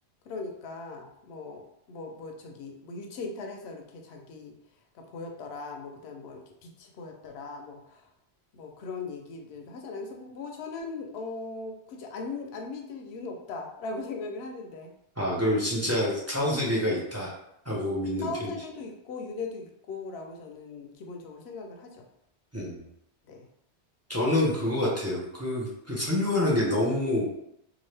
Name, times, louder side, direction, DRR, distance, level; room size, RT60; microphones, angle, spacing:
voice 1, 0.3-4.5 4.9-8.1 8.5-14.9 18.2-22.1 23.3-23.5, left 3 dB, 75° left, 2 dB, 0.8 m, -39 dB
voice 2, 15.2-17.3 17.7-18.5 22.5-22.8 24.1-27.3, left 1 dB, 20° right, -5 dB, 0.5 m, -27 dB
2.9 x 2.4 x 3.2 m, 0.78 s
omnidirectional pair, 1.1 m